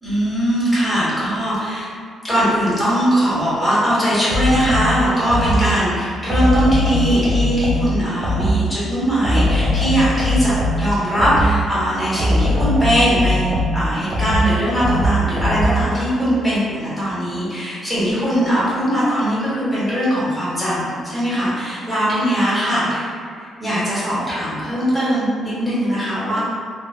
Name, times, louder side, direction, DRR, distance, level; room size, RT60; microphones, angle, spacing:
voice 1, 0.0-1.9 2.2-22.8 23.6-26.4, equal, 10° left, -10 dB, 1.3 m, -20 dB
sound 1, 4.3-5.8 6.3-8.8 9.2-11.7 12.2-16.0, equal, 50° right, 0.5 m, -20 dB
3.1 x 2.0 x 2.5 m, 2.2 s
cardioid pair, 90°, 0 cm